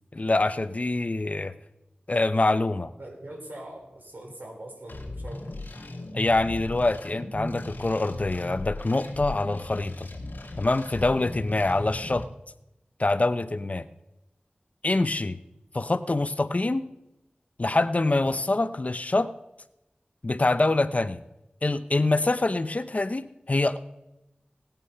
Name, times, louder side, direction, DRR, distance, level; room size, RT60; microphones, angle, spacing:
voice 1, 0.1-1.5 2.1-2.9 6.1-10.1 10.6-12.3 13.0-13.9 14.8-15.4 15.7-16.9 17.6-19.3 20.2-21.2 21.6-23.8, left 2 dB, 45° left, 12 dB, 0.7 m, -25 dB
voice 2, 3.0-5.5, right 1 dB, 70° right, 1 dB, 4.2 m, -42 dB
sound 1, 4.9-12.3, left 2 dB, 85° left, 2.0 m, -37 dB
18.0 x 9.0 x 5.6 m, 0.90 s
wide cardioid pair, 60°, 3 cm